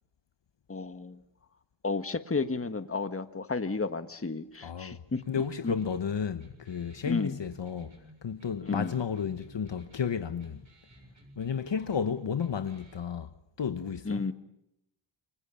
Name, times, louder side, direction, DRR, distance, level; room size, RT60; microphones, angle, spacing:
voice 1, 0.7-1.2 1.8-5.2 5.6-5.7 7.0-7.4 8.6-9.0 14.0-14.3, left 4 dB, 30° left, 1.6 m, -32 dB
voice 2, 4.6-5.0 5.3-7.9 8.2-10.6 11.4-13.3 13.6-14.2, left 7 dB, 60° left, 1.2 m, -32 dB
sound 1, 5.1-13.1, right 1 dB, 35° right, 7.1 m, -56 dB
29.0 x 24.5 x 7.1 m
wide cardioid pair, 90°, 48 cm